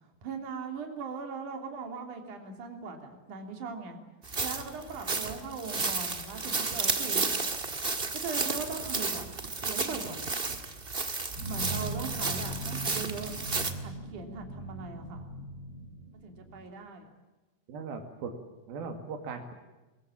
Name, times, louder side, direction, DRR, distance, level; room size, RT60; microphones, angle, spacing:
voice 1, 0.2-4.0 4.4-7.2 8.1-10.3 11.5-13.3 13.8-15.3 16.2-17.1, right 4 dB, 60° right, 4 dB, 4.6 m, -40 dB
sound 1, 4.2-13.7, right 3 dB, 30° right, 1.0 m, -32 dB
sound 2, 11.4-16.6, right 2 dB, 35° left, 7.4 m, -39 dB
voice 2, 17.7-18.3 18.7-19.5, right 5 dB, 90° right, 5 dB, 4.0 m, -38 dB
23.5 x 22.5 x 8.6 m, 1.1 s
omnidirectional pair, 4.2 m